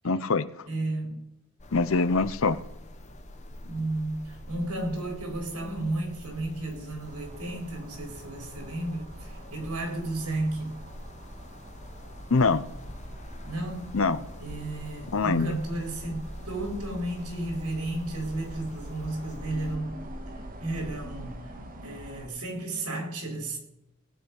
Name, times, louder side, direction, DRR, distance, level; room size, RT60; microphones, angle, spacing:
voice 1, 0.0-0.5 1.7-2.6 12.3-12.7 13.9-14.3 15.1-15.6, left 3 dB, 65° left, 0.7 m, -24 dB
voice 2, 0.7-1.1 3.6-10.8 13.4-13.9 14.4-19.9 20.6-21.4 21.8-23.6, right 2 dB, 85° right, 4.3 m, -33 dB
sound 1, 1.6-19.8, left 1 dB, 30° left, 1.2 m, -45 dB
sound 2, 7.0-22.3, right 1 dB, 40° right, 1.7 m, -45 dB
18.5 x 8.7 x 5.4 m
head